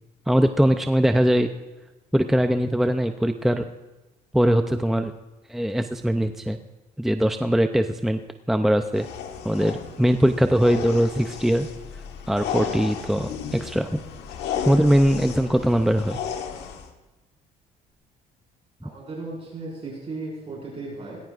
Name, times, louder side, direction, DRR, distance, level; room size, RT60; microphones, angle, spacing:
voice 1, 0.3-1.5 2.1-3.6 4.3-5.1 5.5-6.6 7.0-8.2 8.5-9.1 9.4-11.7 12.3-14.0 14.6-16.2, equal, ahead, 7 dB, 0.5 m, -21 dB
sound 1, 8.9-16.9, left 7 dB, 85° left, 1.5 m, -34 dB
voice 2, 18.8-21.2, right 3 dB, 35° right, -4 dB, 5.2 m, -36 dB
19.5 x 17.5 x 2.5 m, 1.1 s
cardioid pair, 110°, 17 cm